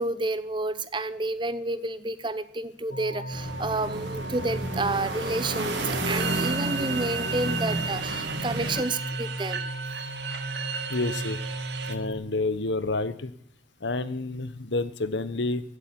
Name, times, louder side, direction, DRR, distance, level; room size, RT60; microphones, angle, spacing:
voice 1, 0.0-9.6, right 2 dB, 25° right, 14 dB, 0.8 m, -30 dB
sound 1, 2.9-12.1, right 1 dB, 55° left, 3.4 m, -36 dB
sound 2, 3.3-8.8, right 1 dB, 85° right, 2.9 m, -32 dB
sound 3, 5.6-12.0, right 7 dB, 70° right, 1.4 m, -35 dB
voice 2, 10.9-11.4 11.9-13.3 13.8-15.6, left 2 dB, 80° left, 14 dB, 1.2 m, -29 dB
16.5 x 8.4 x 9.8 m, 0.66 s
head